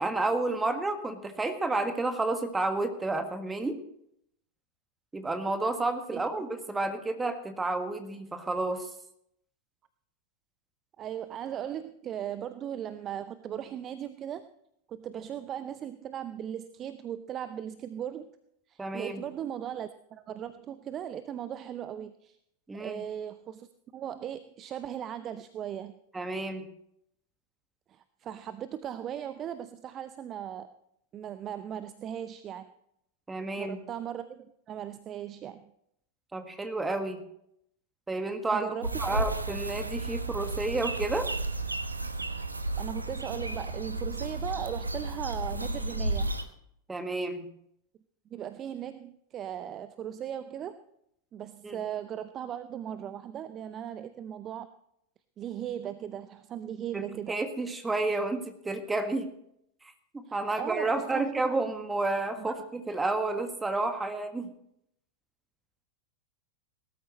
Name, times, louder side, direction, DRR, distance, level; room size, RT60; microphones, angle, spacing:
voice 1, 0.0-3.8 5.1-8.9 18.8-19.2 22.7-23.0 26.1-26.7 33.3-33.8 36.3-37.2 38.1-38.7 39.0-41.3 46.9-47.5 51.6-51.8 56.9-59.3 60.1-64.5, right 2 dB, 10° right, 7 dB, 1.6 m, -31 dB
voice 2, 6.1-6.4 11.0-14.5 14.9-18.3 18.7-22.4 22.8-26.0 27.9-30.7 31.1-32.7 33.6-35.7 38.5-39.3 42.3-42.5 42.8-46.3 48.3-50.8 51.3-54.7 55.4-57.4 60.3-61.6 62.5-62.6, right 10 dB, 30° right, 12 dB, 0.6 m, -38 dB
sound 1, 38.8-46.4, right 2 dB, 80° right, 1.0 m, -33 dB
19.0 x 13.0 x 3.1 m, 0.73 s
figure-of-eight pair, 90°, 0 cm